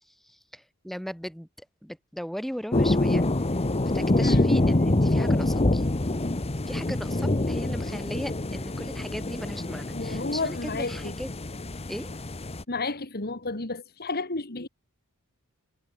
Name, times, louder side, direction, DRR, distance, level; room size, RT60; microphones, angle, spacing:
voice 1, 0.2-3.2 3.8-5.8 6.7-11.3 11.9-12.1, equal, ahead, 3.1 m, -37 dB
sound 1, 2.7-12.6, left 2 dB, 30° left, 1.0 m, -26 dB
voice 2, 4.2-4.5 9.9-11.2 12.7-14.7, left 3 dB, 45° left, 2.6 m, -31 dB
head